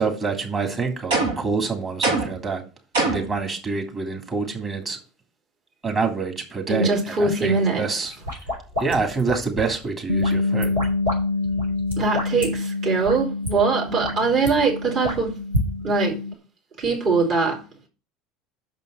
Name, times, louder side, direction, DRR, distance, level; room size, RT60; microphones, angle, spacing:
voice 1, 0.0-2.6 3.1-5.0 5.8-8.2 8.8-10.8, right 4 dB, 30° right, 3.0 m, -26 dB
sound 1, 1.1-1.5 2.0-2.5 2.9-3.4, right 3 dB, 70° right, 1.7 m, -23 dB
voice 2, 6.7-7.8 12.0-15.4 15.8-16.2 16.8-17.6, right 4 dB, 50° right, 3.4 m, -22 dB
sound 2, 8.1-9.8 10.2-11.2 11.4-12.5 13.0-13.1 13.4-13.5 13.9-14.5 15.0-15.7, left 1 dB, 85° right, 3.6 m, -28 dB
Bass guitar, 10.1-16.3, left 3 dB, 90° left, 0.4 m, -27 dB
6.5 x 5.4 x 6.4 m
figure-of-eight pair, 70°, 0 cm